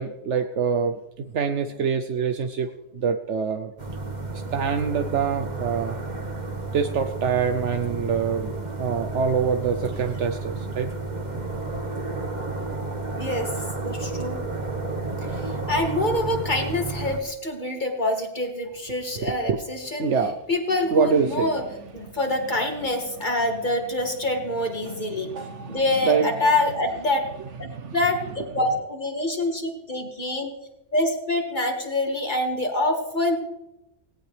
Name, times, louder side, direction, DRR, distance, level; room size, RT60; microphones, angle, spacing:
voice 1, 0.0-3.7 4.3-6.0 6.7-10.9 19.2-19.6 20.0-20.4 20.9-21.5 22.1-22.2 24.8-26.3 27.6-28.0, right 6 dB, 80° right, 7 dB, 1.2 m, -25 dB
sound 1, 3.8-17.2, right 3 dB, 40° right, 1.6 m, -31 dB
voice 2, 13.1-13.5 13.8-14.4 15.3-20.1 20.5-21.6 21.9-25.3 25.7-27.3 27.6-30.5 30.9-33.3, left 2 dB, 40° left, 2 dB, 2.7 m, -26 dB
18.5 x 18.0 x 3.4 m, 0.92 s
omnidirectional pair, 1.2 m